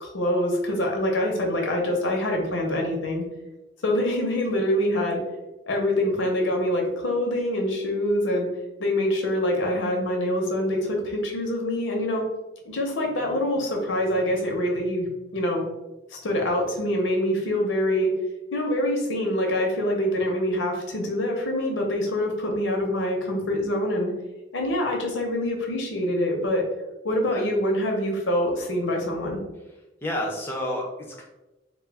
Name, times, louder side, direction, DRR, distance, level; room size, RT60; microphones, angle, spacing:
voice 1, 0.0-3.2 3.8-5.2 5.7-8.5 8.8-12.3 12.6-15.6 16.1-18.1 18.5-24.1 24.5-26.6 27.0-29.4, left 1 dB, 85° left, 1 dB, 0.7 m, -25 dB
voice 2, 30.0-31.2, left 1 dB, 10° left, -1 dB, 0.3 m, -30 dB
2.3 x 2.2 x 3.3 m, 1.0 s
head